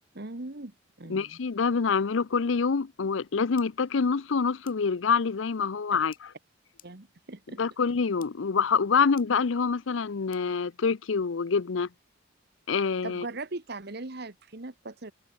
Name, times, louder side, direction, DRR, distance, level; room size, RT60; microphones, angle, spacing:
voice 1, 0.1-1.4 5.9-6.0 6.8-7.6 13.0-15.1, right 2 dB, 55° right, 1.5 m, -39 dB
voice 2, 1.1-6.3 7.6-11.9 12.7-13.3, left 5 dB, 75° left, 0.6 m, -26 dB
sound 1, 3.6-3.7 4.7-4.8 6.1-6.2 6.8-6.9 7.9-8.0 8.2-8.3 9.2-9.3 10.3-10.4, left 12 dB, 45° left, 2.5 m, -52 dB
head